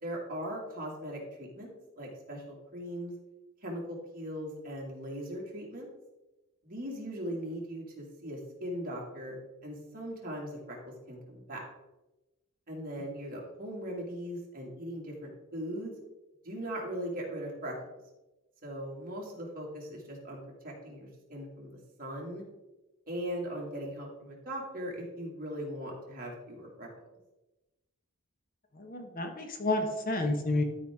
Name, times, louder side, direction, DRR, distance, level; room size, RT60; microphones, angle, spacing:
voice 1, 0.0-3.1 3.6-5.9 6.6-9.4 9.6-11.6 12.7-15.9 16.4-17.9 18.6-22.4 23.1-26.9, equal, 40° right, -2 dB, 2.3 m, -39 dB
voice 2, 28.7-30.6, left 2 dB, 40° left, 5 dB, 1.0 m, -30 dB
13.0 x 4.9 x 3.6 m, 1.0 s
head